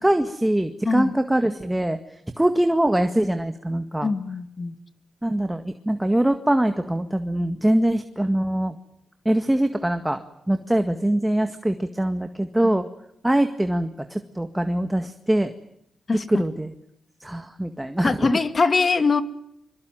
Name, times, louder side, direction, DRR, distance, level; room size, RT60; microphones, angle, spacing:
voice 1, 0.0-2.0 2.4-4.1 5.2-8.7 9.3-10.2 10.5-12.9 13.2-15.5 16.3-16.7 17.2-18.3, right 1 dB, 10° right, 8 dB, 1.9 m, -23 dB
voice 2, 4.0-4.7 16.1-16.4 18.0-19.2, left 4 dB, 45° left, 11 dB, 2.2 m, -22 dB
24.5 x 23.5 x 9.1 m, 0.76 s
cardioid pair, 65°, 0 cm